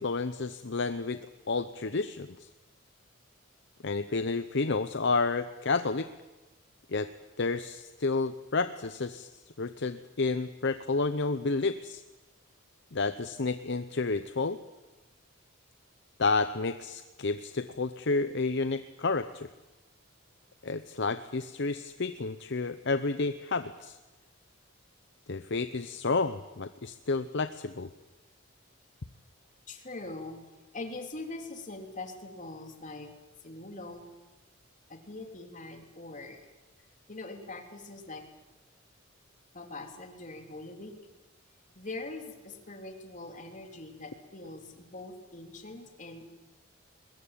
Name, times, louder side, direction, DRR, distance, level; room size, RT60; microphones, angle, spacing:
voice 1, 0.0-2.3 3.8-6.1 6.9-7.1 7.4-9.3 9.6-12.0 12.9-14.6 16.2-19.5 20.6-24.0 25.3-27.9, left 3 dB, 60° left, 11 dB, 0.8 m, -30 dB
voice 2, 29.7-30.4 30.7-33.1 33.4-34.1 34.9-36.5 37.1-38.2 39.5-40.9 41.7-46.3, left 2 dB, 40° left, 3 dB, 3.2 m, -42 dB
22.0 x 21.0 x 9.0 m, 1.1 s
head